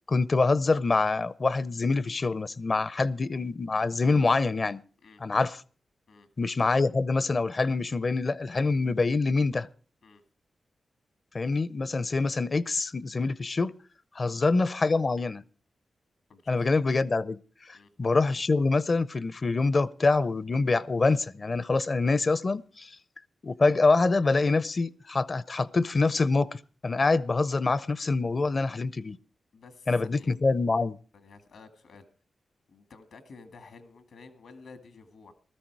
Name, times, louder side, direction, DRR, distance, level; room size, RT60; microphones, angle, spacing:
voice 1, 0.1-4.8 5.2-5.6 6.4-9.7 11.3-13.7 14.1-15.4 16.5-17.4 17.7-23.0 23.4-29.2 29.9-31.0, left 3 dB, 45° left, 0.6 m, -25 dB
voice 2, 16.3-16.7 17.7-17.9 29.5-30.4 31.1-32.1 32.7-35.3, left 4 dB, 80° left, 1.9 m, -51 dB
15.5 x 13.5 x 4.6 m
cardioid pair, 50°, 0 cm